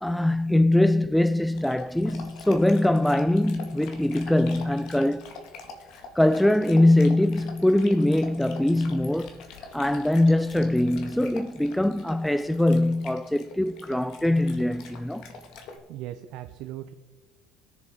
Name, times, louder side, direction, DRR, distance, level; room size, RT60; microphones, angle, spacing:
voice 1, 0.0-5.3 6.2-9.4 9.7-15.3, left 1 dB, 5° left, 0.3 m, -22 dB
Dog, 1.5-15.8, left 4 dB, 65° left, 1.8 m, -45 dB
voice 2, 15.9-16.9, right 13 dB, 70° right, 0.6 m, -38 dB
20.5 x 7.2 x 4.3 m
supercardioid pair, 90°, 0 cm